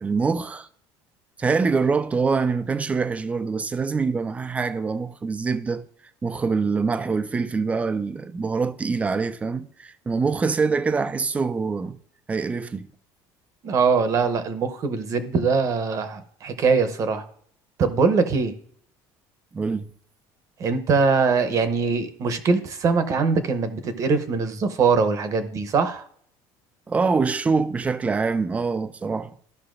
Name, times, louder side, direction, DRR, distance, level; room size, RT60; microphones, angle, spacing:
voice 1, 0.0-0.7 1.4-5.9 6.2-12.0 12.3-12.9 19.5-19.9 26.9-29.3, right 4 dB, 15° right, 0.4 m, -24 dB
voice 2, 13.6-17.2 17.8-18.5 20.6-26.0, right 5 dB, 35° right, 0.8 m, -22 dB
14.0 x 5.6 x 2.5 m
cardioid pair, 150°, 9 cm